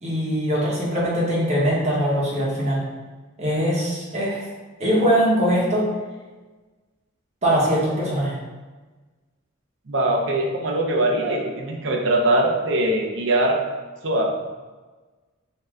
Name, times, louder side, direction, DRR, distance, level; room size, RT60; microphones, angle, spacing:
voice 1, 0.0-2.8 3.4-4.4 4.8-5.8 7.4-8.4, equal, 35° right, -6 dB, 1.1 m, -21 dB
voice 2, 9.9-13.6 14.0-14.5, right 1 dB, 65° right, 0 dB, 0.6 m, -22 dB
3.2 x 2.8 x 3.6 m, 1.3 s
head